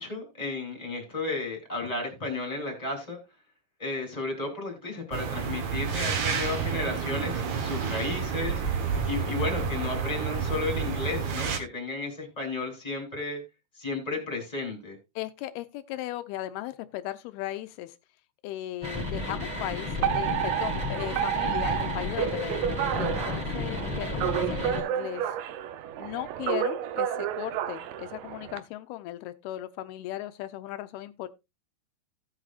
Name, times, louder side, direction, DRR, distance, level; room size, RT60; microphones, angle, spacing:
voice 1, 0.0-3.2 3.8-8.6 9.1-13.4 13.8-15.0, left 3 dB, 10° left, 2.5 m, -33 dB
sound 1, 5.1-11.6, right 6 dB, 65° right, 1.8 m, -30 dB
voice 2, 15.2-17.9 18.4-25.4 26.0-31.3, left 14 dB, 80° left, 2.3 m, -37 dB
sound 2, 18.8-24.8, left 2 dB, 10° right, 2.6 m, -32 dB
Alarm, 20.0-28.6, right 10 dB, 85° right, 2.0 m, -30 dB
16.5 x 6.1 x 2.4 m
omnidirectional pair, 4.9 m